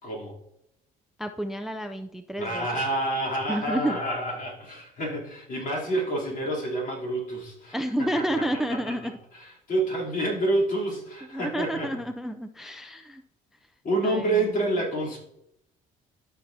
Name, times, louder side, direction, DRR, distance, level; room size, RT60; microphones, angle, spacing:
voice 1, 0.0-0.4 2.4-8.4 9.7-11.9 13.8-15.2, right 1 dB, 50° left, -3 dB, 3.3 m, -28 dB
voice 2, 1.2-2.7 3.5-4.0 7.7-9.1 11.2-13.2 14.0-14.8, right 1 dB, ahead, 8 dB, 0.4 m, -30 dB
13.0 x 5.8 x 2.7 m, 0.80 s
cardioid pair, 110°, 17 cm